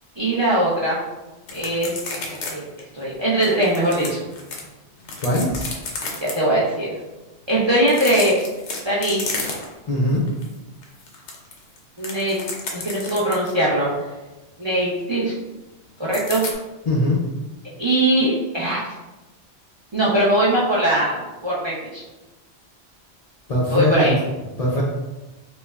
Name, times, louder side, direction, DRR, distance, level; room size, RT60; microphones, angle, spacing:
voice 1, 0.2-1.0 1.5-2.2 2.5-2.6 2.9-4.2 6.2-7.0 7.5-8.4 8.8-9.2 12.0-12.4 12.7-13.9 14.6-15.3 16.0-16.4 17.8-18.9 19.9-22.0 23.7-24.1, right 1 dB, 35° right, -5 dB, 0.5 m, -21 dB
sound 1, 1.5-2.5 2.8-2.9 3.4-4.6 5.0-6.3 7.8-9.9 10.3-10.5 10.8-13.6 16.1-16.5, left 3 dB, 85° left, 1.0 m, -31 dB
voice 2, 5.2-5.5 9.9-10.2 16.9-17.2 23.5-24.2 24.6-24.8, left 1 dB, 45° left, -5 dB, 0.5 m, -20 dB
5.2 x 2.0 x 2.3 m, 1.1 s
omnidirectional pair, 1.2 m